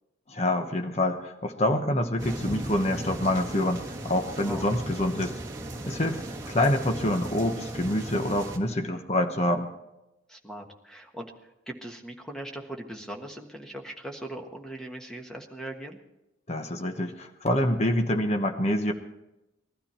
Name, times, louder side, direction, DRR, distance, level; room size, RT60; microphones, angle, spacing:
voice 1, 0.3-5.3 5.9-9.7 16.5-18.9, left 1 dB, 30° left, 5 dB, 1.0 m, -26 dB
sound 1, 2.2-8.6, right 1 dB, 20° right, 1.5 m, -36 dB
voice 2, 10.3-16.0, right 1 dB, 5° left, 2 dB, 1.4 m, -40 dB
19.5 x 13.0 x 4.4 m, 0.92 s
head